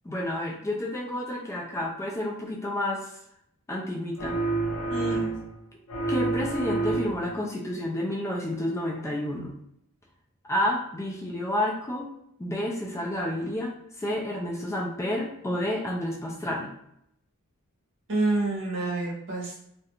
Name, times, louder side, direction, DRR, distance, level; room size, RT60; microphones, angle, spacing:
voice 1, 0.0-3.1 3.7-4.4 6.1-9.5 10.5-12.1 12.4-16.7, left 1 dB, 15° left, -2 dB, 0.3 m, -30 dB
sound 1, 4.2-5.6 5.9-7.4, right 3 dB, 85° left, 0.6 m, -29 dB
voice 2, 4.9-5.3 18.1-19.6, right 2 dB, 60° right, -3 dB, 0.9 m, -28 dB
2.4 x 2.1 x 2.8 m, 0.74 s
head